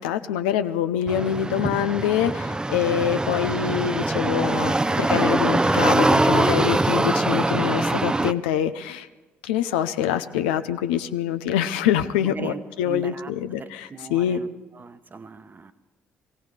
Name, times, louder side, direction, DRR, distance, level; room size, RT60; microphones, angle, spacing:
voice 1, 0.0-9.1 9.4-13.1 13.4-14.4, left 10 dB, 85° left, 10 dB, 0.6 m, -25 dB
sound 1, 1.1-8.3, right 2 dB, 15° right, 0.5 m, -22 dB
voice 2, 12.2-13.3 13.6-14.5 14.7-15.7, right 4 dB, 35° right, 11 dB, 1.0 m, -39 dB
17.5 x 16.5 x 4.8 m, 1.2 s
hypercardioid pair, 55°, 5 cm